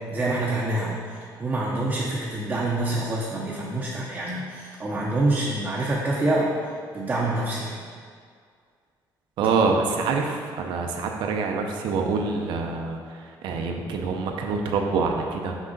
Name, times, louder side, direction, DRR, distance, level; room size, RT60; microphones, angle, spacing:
voice 1, 0.1-7.7, right 2 dB, 20° right, -5 dB, 0.7 m, -26 dB
voice 2, 9.4-15.6, right 4 dB, 80° right, 2 dB, 0.7 m, -26 dB
6.1 x 5.4 x 4.0 m, 2.1 s
cardioid pair, 180°, 8 cm